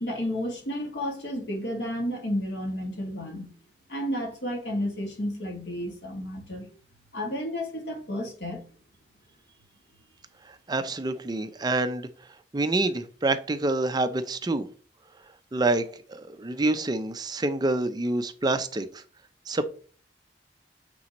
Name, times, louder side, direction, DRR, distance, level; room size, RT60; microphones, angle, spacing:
voice 1, 0.0-3.5 3.9-6.7 7.1-8.6, equal, 75° left, 2.0 m, -32 dB
voice 2, 10.7-12.1 12.5-14.7 15.5-18.9 19.5-19.6, right 2 dB, 25° right, 0.5 m, -27 dB
8.4 x 4.2 x 3.0 m
head